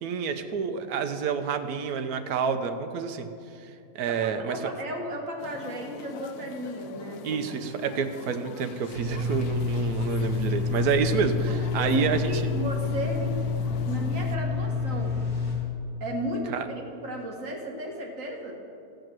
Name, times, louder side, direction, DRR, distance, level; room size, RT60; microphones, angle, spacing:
voice 1, 0.0-3.3 3.6-3.7 3.9-4.6 7.2-12.4 16.5-16.7, right 6 dB, 75° right, 7 dB, 1.2 m, -28 dB
voice 2, 4.0-7.6 11.5-13.4 13.8-15.2 16.0-18.6, right 1 dB, 55° right, 1 dB, 1.8 m, -35 dB
sound 1, 5.4-14.4, left 8 dB, 80° left, 1.1 m, -43 dB
sound 2, 8.9-15.5, left 4 dB, 35° left, 3.8 m, -28 dB
15.5 x 5.2 x 7.6 m, 2.7 s
omnidirectional pair, 1.6 m